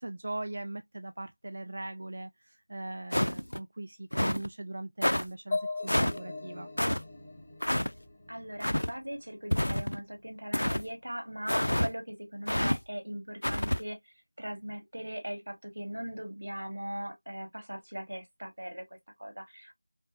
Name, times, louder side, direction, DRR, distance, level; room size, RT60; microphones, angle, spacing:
voice 1, 0.0-6.7, right 2 dB, 45° right, 0.3 m, -40 dB
sound 1, 3.1-3.6 4.1-4.5 5.0-5.2 5.9-6.2 6.8-7.0 7.6-7.9 8.6-8.9 9.5-10.0 10.5-10.8 11.5-11.9 12.5-12.8 13.4-13.8, left 1 dB, 90° left, 0.5 m, -28 dB
sound 2, 5.5-9.2, left 3 dB, 10° left, 1.0 m, -39 dB
voice 2, 8.3-14.0 14.4-19.7, right 1 dB, 80° right, 1.6 m, -39 dB
5.3 x 2.0 x 2.6 m
figure-of-eight pair, 175°, 0 cm